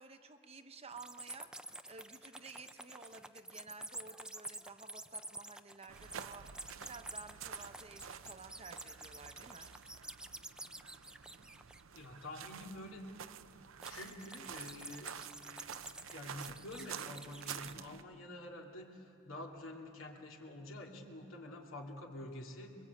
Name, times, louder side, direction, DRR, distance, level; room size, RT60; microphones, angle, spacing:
voice 1, 0.0-9.7, right 4 dB, 30° right, 8 dB, 0.9 m, -53 dB
sound 1, 0.9-12.2 13.8-17.8, right 2 dB, 5° right, 0.5 m, -49 dB
sound 2, 5.9-18.0, right 8 dB, 90° right, 0.7 m, -50 dB
voice 2, 11.9-13.1 13.9-15.1 16.1-22.8, left 1 dB, 80° left, 1 dB, 2.7 m, -48 dB
24.5 x 22.5 x 8.6 m, 2.9 s
head